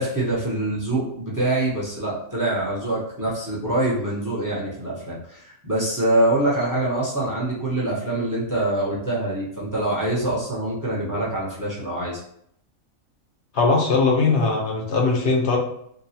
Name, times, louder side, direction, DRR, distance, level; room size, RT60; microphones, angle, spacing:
voice 1, 0.0-12.2, right 1 dB, 20° right, -6 dB, 0.6 m, -24 dB
voice 2, 13.5-15.6, left 3 dB, 60° left, 0 dB, 0.9 m, -20 dB
3.8 x 2.2 x 2.7 m, 0.68 s
omnidirectional pair, 1.4 m